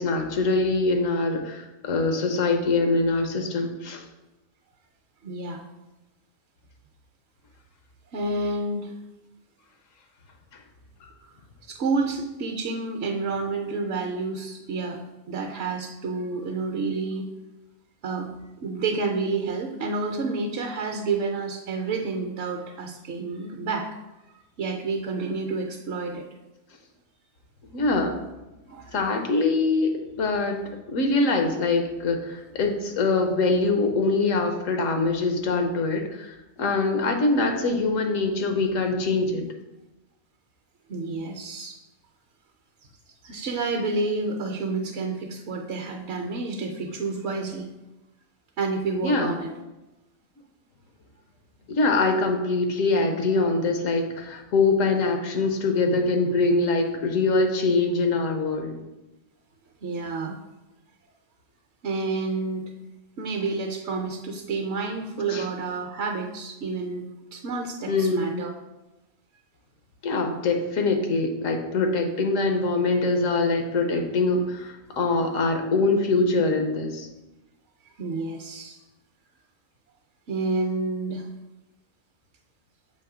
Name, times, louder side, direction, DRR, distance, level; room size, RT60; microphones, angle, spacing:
voice 1, 0.0-4.0 11.0-11.1 27.7-28.2 28.9-29.9 30.2-30.6 30.9-39.4 49.0-49.3 51.7-58.8 65.3-65.4 67.9-68.4 70.0-77.1, left 3 dB, 80° left, 4 dB, 1.2 m, -23 dB
voice 2, 5.2-5.6 8.1-8.9 11.7-15.0 15.3-17.3 18.0-18.3 18.6-23.9 24.6-26.2 28.7-29.0 40.9-41.8 43.2-47.7 48.6-49.6 59.8-60.4 61.8-62.6 63.2-67.0 67.3-68.5 78.0-78.8 80.3-81.3, right 3 dB, 65° right, 1 dB, 0.9 m, -29 dB
7.0 x 3.0 x 4.9 m, 1.0 s
omnidirectional pair, 1.3 m